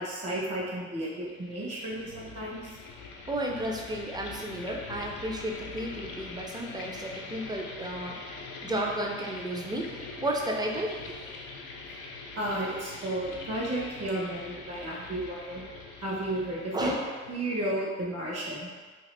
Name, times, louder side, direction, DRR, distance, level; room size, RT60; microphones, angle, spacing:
voice 1, 0.0-2.8 12.4-15.6 16.0-16.9 17.3-18.7, right 1 dB, 55° right, -5 dB, 1.1 m, -33 dB
sound 1, 1.2-17.9, left 3 dB, 90° left, 0.5 m, -43 dB
voice 2, 3.3-8.2 8.6-9.9 10.2-11.2 16.7-17.1, right 1 dB, 15° right, 0 dB, 0.5 m, -33 dB
2.8 x 2.5 x 3.2 m, 1.4 s
cardioid pair, 90°, 30 cm